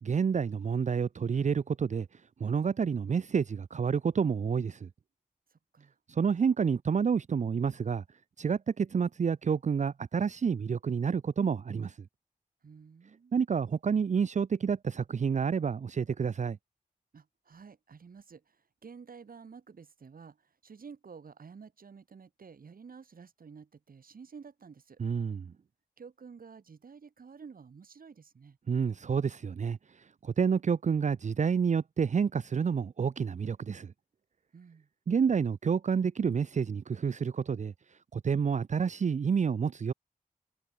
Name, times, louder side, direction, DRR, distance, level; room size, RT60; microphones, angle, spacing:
voice 1, 0.0-2.1 2.4-4.9 6.1-8.0 8.4-11.9 13.3-16.6 25.0-25.5 28.7-29.8 30.2-33.9 35.1-37.7 38.1-39.9, right 6 dB, 55° right, 0.5 m, -29 dB
voice 2, 5.5-5.9 12.6-13.3 17.1-25.0 26.0-28.6 34.5-34.9, right 5 dB, 85° right, 7.2 m, -51 dB
wide cardioid pair, 105°, 14 cm